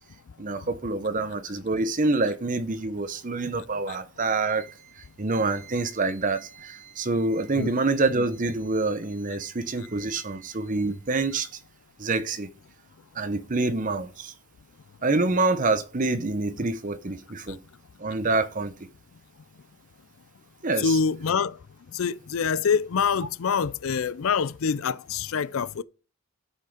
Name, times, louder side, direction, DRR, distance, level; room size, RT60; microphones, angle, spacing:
voice 1, 0.4-4.7 5.2-11.5 12.0-12.5 13.2-14.3 15.0-17.6 18.0-18.7 20.6-21.0, right 3 dB, 35° right, 0.8 m, -26 dB
voice 2, 20.8-21.6 21.9-25.8, left 6 dB, 65° left, 0.4 m, -25 dB
12.5 x 5.5 x 5.1 m
head